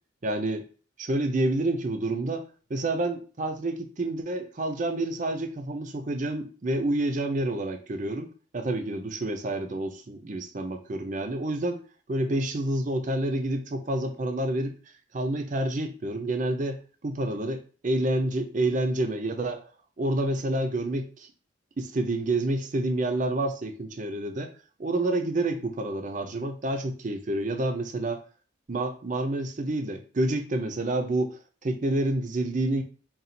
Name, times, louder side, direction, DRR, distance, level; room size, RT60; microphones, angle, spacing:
voice 1, 0.2-0.7 1.0-11.8 12.1-14.7 15.1-19.6 20.0-21.3 21.8-24.5 24.8-28.2 28.7-32.8, right 1 dB, 40° right, 6 dB, 0.5 m, -28 dB
3.9 x 2.3 x 4.2 m, 0.38 s
head